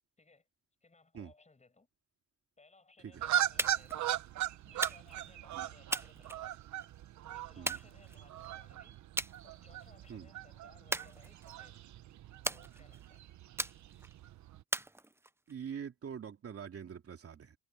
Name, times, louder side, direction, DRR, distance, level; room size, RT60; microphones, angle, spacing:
voice 1, 0.8-1.9 2.6-4.0 4.7-6.7 7.3-9.1 9.4-11.8 12.4-13.2, left 3 dB, 25° left, 7.6 m, -63 dB
sound 1, 3.1-14.6, right 11 dB, 70° right, 1.1 m, -39 dB
sound 2, 3.6-4.0 4.8-5.3 5.9-6.8 7.7-8.5 9.2-9.4 9.8-10.1 10.9-11.7 12.4-13.1 13.6-14.1 14.7-15.5, right 2 dB, 10° right, 0.7 m, -38 dB
voice 2, 15.5-17.6, right 7 dB, 50° right, 2.9 m, -44 dB
cardioid pair, 90°, 30 cm